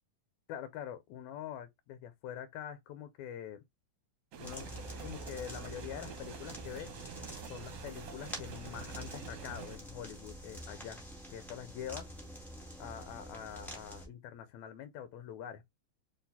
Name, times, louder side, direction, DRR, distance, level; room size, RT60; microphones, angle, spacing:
voice 1, 0.5-3.6 4.4-6.9 7.5-11.0 11.3-12.1 12.8-15.7, left 9 dB, 80° left, 1.8 m, -45 dB
sound 1, 4.3-9.8, right 6 dB, 75° right, 2.0 m, -47 dB
sound 2, 4.4-14.1, equal, ahead, 1.4 m, -47 dB
4.5 x 3.9 x 2.7 m
omnidirectional pair, 3.5 m